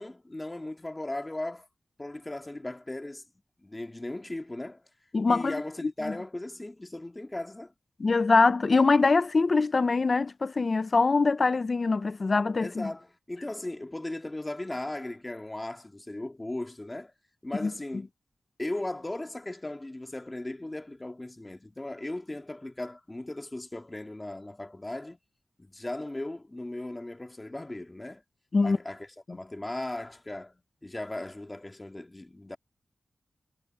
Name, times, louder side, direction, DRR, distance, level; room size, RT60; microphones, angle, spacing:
voice 1, 0.0-1.7 2.0-3.2 3.6-4.8 5.3-7.7 12.6-17.1 17.4-18.1 18.6-25.2 25.6-28.2 28.6-32.6, left 1 dB, 20° left, 2.0 m, -37 dB
voice 2, 5.1-5.6 6.0-6.2 8.0-12.9 17.6-17.7 28.5-28.8 29.3-29.4, left 4 dB, 50° left, 0.5 m, -23 dB
wide cardioid pair, 80°, 0 cm